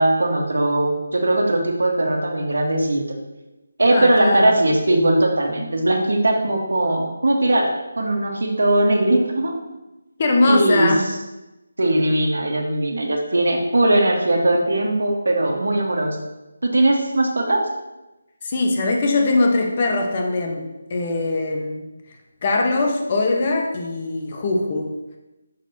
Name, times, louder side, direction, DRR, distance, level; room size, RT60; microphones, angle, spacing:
voice 1, 0.0-3.0 3.8-7.7 8.0-9.6 10.5-10.9 11.8-16.2 16.6-17.6, right 1 dB, 90° right, 2 dB, 1.3 m, -19 dB
voice 2, 3.9-4.6 10.2-11.1 18.4-21.9 22.4-24.9, left 2 dB, 25° left, 2 dB, 0.8 m, -21 dB
6.3 x 5.8 x 2.8 m, 1.0 s
figure-of-eight pair, 175°, 0 cm